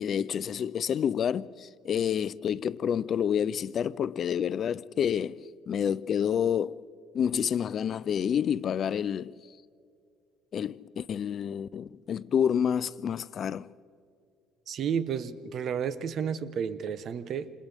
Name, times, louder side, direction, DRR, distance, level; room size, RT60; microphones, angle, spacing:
voice 1, 0.0-6.8 7.1-9.3 10.5-13.7, left 8 dB, 45° left, 0.5 m, -29 dB
voice 2, 14.7-17.5, right 7 dB, 50° right, 1.0 m, -31 dB
29.0 x 27.5 x 3.5 m
cardioid pair, 115°, 0 cm